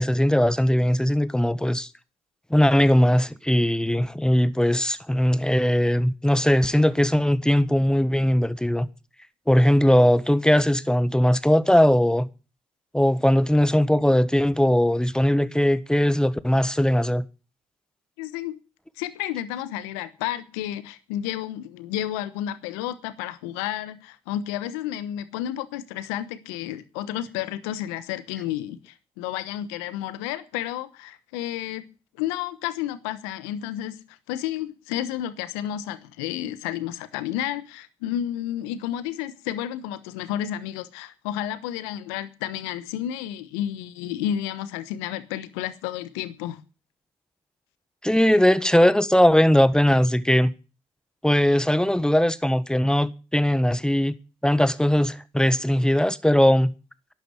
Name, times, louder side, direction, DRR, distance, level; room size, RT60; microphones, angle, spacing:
voice 1, 0.0-1.9 2.5-8.9 9.5-12.3 12.9-17.2 48.0-50.5 51.2-54.1 54.4-56.7, equal, 5° left, 1.4 m, -20 dB
voice 2, 18.2-18.6 19.0-31.8 32.2-46.6, left 11 dB, 85° left, 1.1 m, -31 dB
11.5 x 9.6 x 9.8 m
hypercardioid pair, 50°, 13 cm